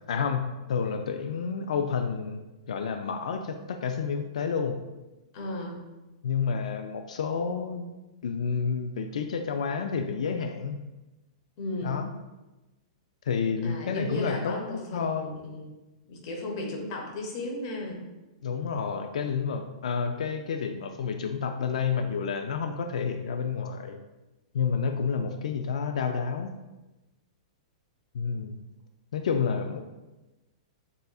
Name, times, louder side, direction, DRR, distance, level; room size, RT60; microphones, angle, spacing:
voice 1, 0.1-2.4 2.7-4.8 6.2-7.9 8.2-10.8 11.8-12.1 13.3-14.5 14.9-15.3 18.4-24.0 24.5-26.5 28.1-28.5 29.1-29.8, left 6 dB, 85° left, 6 dB, 0.3 m, -29 dB
voice 2, 5.3-5.8 11.6-12.0 13.6-15.7 16.1-18.0, left 1 dB, 35° left, 0 dB, 0.8 m, -35 dB
6.7 x 2.5 x 2.3 m, 1.1 s
supercardioid pair, 180°, 4 cm